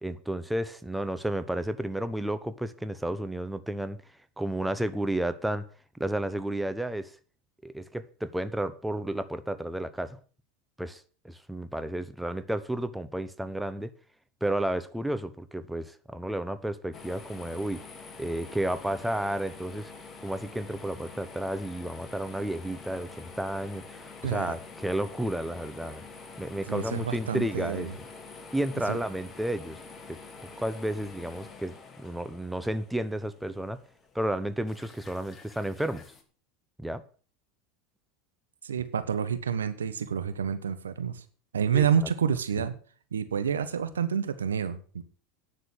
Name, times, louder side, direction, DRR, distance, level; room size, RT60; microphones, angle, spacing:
voice 1, 0.0-4.0 4.4-5.7 6.0-7.1 7.6-10.2 10.8-13.9 14.4-17.8 18.2-19.9 20.2-26.1 26.4-28.0 28.5-29.8 30.1-33.8 34.1-36.0 36.8-37.0 41.7-41.9, right 1 dB, 5° right, 1.1 m, -32 dB
sound 1, 16.9-36.2, left 4 dB, 25° left, 2.7 m, -47 dB
voice 2, 24.2-24.5 26.7-27.9 28.9-29.0 38.6-41.2 41.5-42.7 43.1-45.0, right 7 dB, 90° right, 1.2 m, -28 dB
10.0 x 6.8 x 8.3 m
hypercardioid pair, 85°, 0 cm